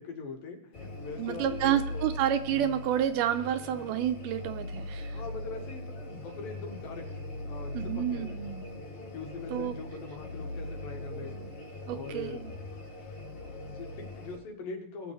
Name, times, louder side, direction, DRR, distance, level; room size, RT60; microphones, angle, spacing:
voice 1, 0.0-2.0 5.1-8.4 9.1-11.4 11.9-12.4 13.6-15.1, left 4 dB, 85° left, 2 dB, 3.3 m, -42 dB
sound 1, 0.7-14.4, left 1 dB, 40° left, 2.7 m, -40 dB
voice 2, 1.2-5.2 7.7-8.6 9.5-9.8 11.9-12.6, right 10 dB, 80° right, 9 dB, 2.1 m, -29 dB
18.5 x 6.8 x 3.4 m, 0.74 s
omnidirectional pair, 4.0 m